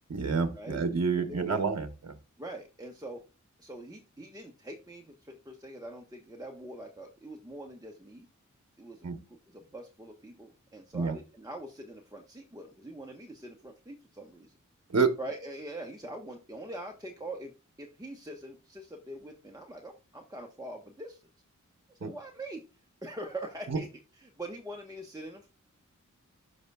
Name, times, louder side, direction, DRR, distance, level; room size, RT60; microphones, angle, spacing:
voice 1, 0.1-2.1 9.0-9.2 10.9-11.2 14.9-15.1 22.0-22.1 23.7-23.8, right 5 dB, 55° right, 8 dB, 1.0 m, -28 dB
voice 2, 1.1-1.6 2.4-3.2 3.6-8.3 8.8-9.1 9.5-14.6 15.2-21.2 21.9-22.7 23.0-23.9 24.2-25.5, right 1 dB, 10° right, 1 dB, 1.2 m, -43 dB
12.5 x 5.4 x 2.4 m, 0.31 s
wide cardioid pair, 50°, 31 cm